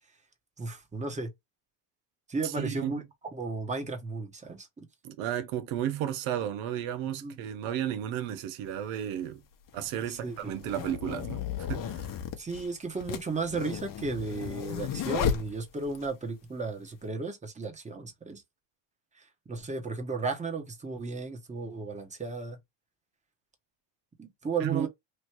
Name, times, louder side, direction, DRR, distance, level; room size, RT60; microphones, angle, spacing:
voice 1, 0.6-1.3 2.3-3.0 3.3-4.9 7.2-7.4 10.1-10.5 12.4-18.4 19.2-22.6 24.2-24.9, right 4 dB, 15° right, 1.2 m, -34 dB
voice 2, 2.4-3.0 5.0-9.4 9.7-12.1 24.6-24.9, right 11 dB, 85° right, 0.9 m, -33 dB
sound 1, 8.7-8.8 9.7-16.1, left 8 dB, 45° left, 0.9 m, -34 dB
3.2 x 2.7 x 4.5 m
cardioid pair, 125°, 47 cm